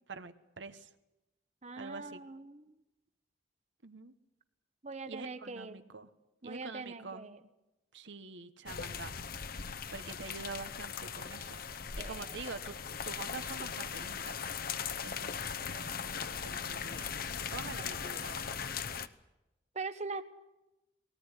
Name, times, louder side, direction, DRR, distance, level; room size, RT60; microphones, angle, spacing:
voice 1, 0.1-0.9 1.8-2.2 3.8-4.1 5.1-6.1 6.4-7.3 7.9-9.1 9.9-11.6 12.0-12.7 13.0-14.4 14.7-17.1 17.5-18.6, right 4 dB, 90° right, 10 dB, 1.2 m, -46 dB
voice 2, 1.6-2.7 4.8-5.9 6.4-7.4 12.0-12.3 19.7-20.2, right 3 dB, 40° right, 11 dB, 1.0 m, -42 dB
sound 1, 8.7-19.1, left 7 dB, 55° left, 0.9 m, -39 dB
20.0 x 18.0 x 9.8 m, 0.96 s
head